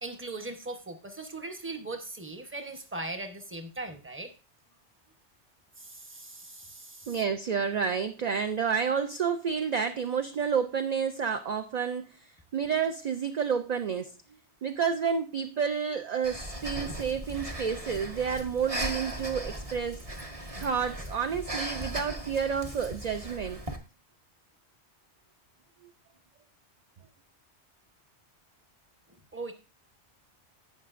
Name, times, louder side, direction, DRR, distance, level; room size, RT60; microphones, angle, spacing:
voice 1, 0.0-4.3 5.8-7.2 29.3-29.5, right 2 dB, 10° right, 0.9 m, -39 dB
voice 2, 7.1-14.1 14.6-20.0 20.6-23.6, right 6 dB, 50° right, 0.5 m, -30 dB
Breathing, 16.2-23.8, right 1 dB, 30° right, 1.3 m, -38 dB
17.0 x 5.8 x 2.5 m
omnidirectional pair, 1.2 m